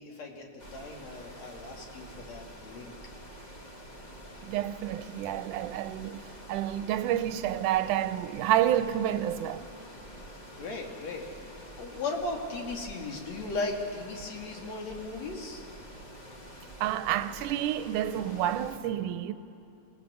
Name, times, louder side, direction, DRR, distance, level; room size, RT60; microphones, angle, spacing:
voice 1, 0.0-2.9 9.8-9.9 10.6-11.3 11.8-15.7, left 3 dB, 60° left, 3.3 m, -37 dB
sound 1, 0.6-18.8, equal, 25° left, 1.0 m, -47 dB
voice 2, 4.4-6.2 6.5-9.7 16.8-19.3, right 12 dB, 90° right, 2.2 m, -29 dB
26.5 x 19.0 x 6.9 m
omnidirectional pair, 3.5 m